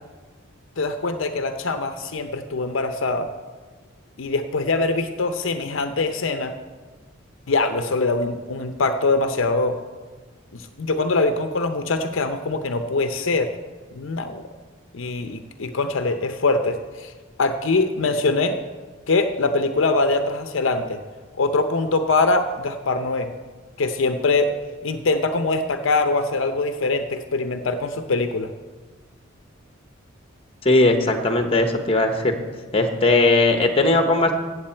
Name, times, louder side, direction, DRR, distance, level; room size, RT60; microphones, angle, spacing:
voice 1, 0.8-3.3 4.2-6.5 7.5-9.8 10.5-13.5 13.9-14.4 14.9-17.1 17.4-18.6 19.1-21.0 21.4-23.3 23.8-24.5 24.8-28.5, left 3 dB, 65° left, 8 dB, 0.6 m, -23 dB
voice 2, 30.6-32.4 32.7-34.3, left 2 dB, 25° left, 6 dB, 1.0 m, -18 dB
15.0 x 8.1 x 4.4 m, 1.4 s
head